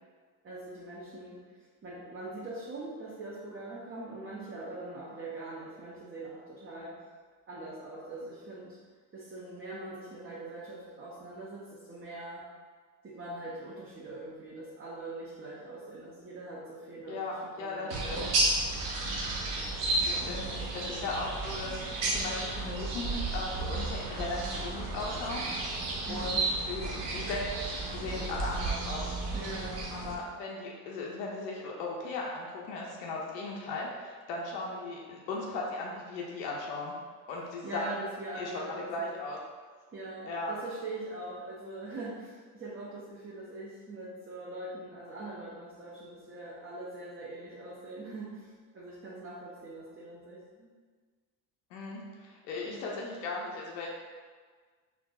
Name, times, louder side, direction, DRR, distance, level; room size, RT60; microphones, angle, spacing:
voice 1, 0.4-1.4 1.8-7.0 7.5-8.8 9.1-12.5 13.0-18.4 20.0-21.1 26.1-26.4 29.3-29.9 37.6-39.2 39.9-50.7 52.7-52.9, right 2 dB, 25° right, -6 dB, 0.7 m, -42 dB
voice 2, 17.1-18.3 20.1-21.8 22.1-25.7 26.1-29.1 29.9-36.9 37.3-37.9 38.3-39.4 40.3-40.5 51.7-53.9, left 3 dB, 70° left, -3 dB, 0.7 m, -37 dB
sound 1, 17.9-30.1, right 2 dB, 70° right, 0.7 m, -33 dB
4.6 x 2.5 x 2.3 m, 1.5 s
figure-of-eight pair, 50°, 50 cm